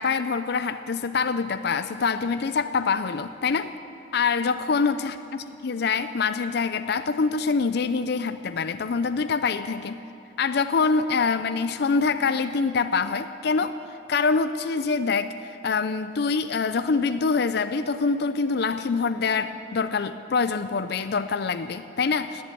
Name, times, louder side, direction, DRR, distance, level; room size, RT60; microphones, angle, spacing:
voice 1, 0.0-3.7 4.1-10.0 10.4-13.8 14.1-15.3 15.6-22.4, left 4 dB, 60° left, 11 dB, 0.5 m, -25 dB
19.0 x 7.8 x 9.2 m, 2.6 s
head